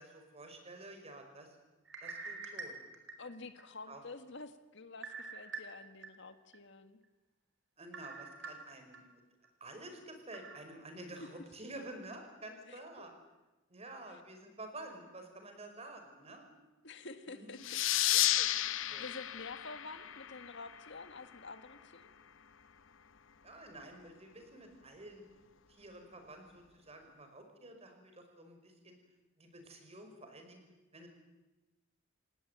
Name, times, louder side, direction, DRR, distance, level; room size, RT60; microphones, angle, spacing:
voice 1, 0.0-1.6 2.0-2.8 3.9-4.0 7.8-9.2 9.6-13.1 13.7-16.5 17.3-17.6 18.9-19.1 23.4-25.2 25.7-29.0 29.4-30.6 30.9-31.1, right 1 dB, 35° right, 5 dB, 5.5 m, -50 dB
sound 1, 1.8-3.6 4.1-4.2 5.0-6.1 6.5-6.6 7.9-9.0 9.4-9.5 10.3-10.6, right 4 dB, 65° right, 4.6 m, -45 dB
voice 2, 3.2-7.0 11.2-11.3 12.7-13.1 16.8-17.7 18.1-18.5 19.0-22.1, left 3 dB, 65° left, 10 dB, 1.7 m, -49 dB
sound 2, 17.6-20.9, left 13 dB, 85° left, 0.9 m, -32 dB
29.0 x 17.5 x 9.3 m, 1.1 s
head